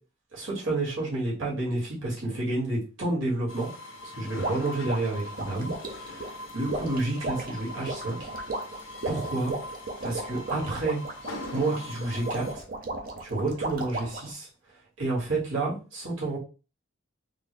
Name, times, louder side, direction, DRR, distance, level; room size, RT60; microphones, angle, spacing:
voice 1, 0.3-3.7 4.0-5.7 6.1-8.3 9.1-9.5 10.0-11.0 11.5-12.6 13.2-14.5 15.0-16.4, right 2 dB, 85° right, -5 dB, 1.9 m, -30 dB
sound 1, 3.5-12.6, left 1 dB, 80° left, 0.9 m, -41 dB
sound 2, 4.4-14.3, right 2 dB, 45° right, 0.7 m, -35 dB
3.7 x 2.3 x 3.3 m, 0.33 s
head